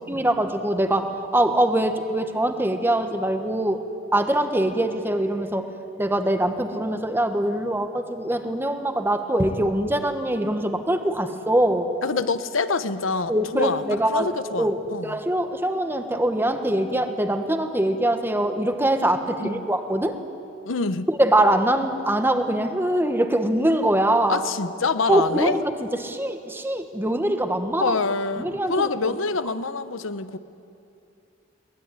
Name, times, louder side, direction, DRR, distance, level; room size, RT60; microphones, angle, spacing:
voice 1, 0.1-3.8 4.1-5.7 6.0-11.9 13.3-14.3 14.6-20.2 21.1-24.4 25.1-25.6 26.0-28.0 28.4-29.1, right 1 dB, 10° right, 7 dB, 1.4 m, -23 dB
voice 2, 12.0-13.8 14.1-15.2 19.3-19.6 20.6-21.1 24.3-25.6 27.8-30.4, left 4 dB, 75° left, 13 dB, 1.0 m, -26 dB
22.0 x 20.5 x 9.7 m, 2.6 s
head